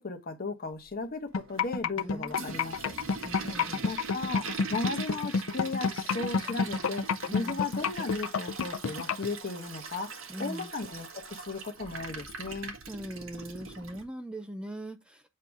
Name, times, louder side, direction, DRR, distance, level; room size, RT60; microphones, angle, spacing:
voice 1, 0.0-2.9 3.8-7.1 7.3-10.1 10.4-12.7, left 3 dB, 45° left, 1.0 m, -36 dB
sound 1, 1.3-9.3, left 5 dB, 85° left, 0.5 m, -28 dB
Toilet flush, 1.3-14.0, right 5 dB, 75° right, 1.4 m, -42 dB
voice 2, 2.0-2.6 3.2-3.9 7.3-7.6 10.3-10.7 12.9-15.3, right 1 dB, 5° right, 0.4 m, -41 dB
7.6 x 2.8 x 4.6 m
head